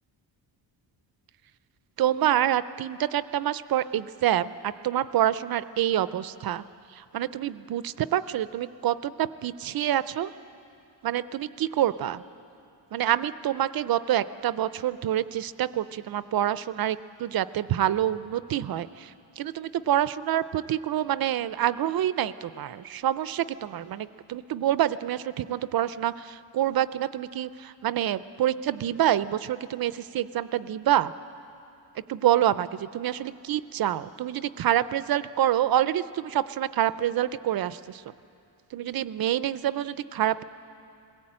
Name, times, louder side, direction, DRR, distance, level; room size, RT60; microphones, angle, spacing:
voice 1, 2.0-10.3 11.0-12.2 12.9-31.1 31.9-38.0 38.7-40.4, right 12 dB, 55° right, 15 dB, 0.5 m, -27 dB
21.5 x 16.5 x 8.7 m, 2.6 s
wide cardioid pair, 160°, 46 cm